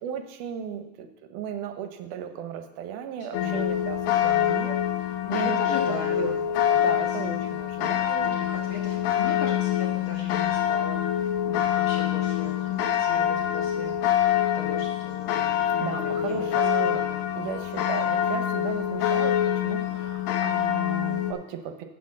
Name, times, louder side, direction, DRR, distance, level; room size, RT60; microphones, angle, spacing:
voice 1, 0.0-5.8 6.1-6.3 6.7-8.4 15.8-17.0 17.4-21.9, right 9 dB, 80° right, 7 dB, 2.1 m, -35 dB
voice 2, 3.2-3.6 5.2-6.4 6.9-7.2 8.3-17.2, left 4 dB, 60° left, -3 dB, 1.4 m, -39 dB
sound 1, 3.3-21.3, left 10 dB, 85° left, 2.2 m, -25 dB
6.5 x 5.9 x 7.4 m, 0.89 s
omnidirectional pair, 3.6 m